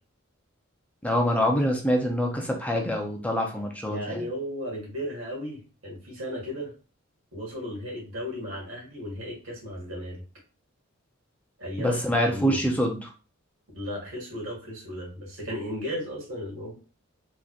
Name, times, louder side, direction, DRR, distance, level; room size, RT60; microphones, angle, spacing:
voice 1, 1.0-4.2 11.8-13.0, equal, 5° left, 1 dB, 0.6 m, -25 dB
voice 2, 3.9-6.7 7.3-10.2 11.6-12.0 12.2-12.7 13.7-16.7, equal, 75° right, -4 dB, 1.9 m, -35 dB
3.8 x 3.1 x 2.5 m, 0.36 s
head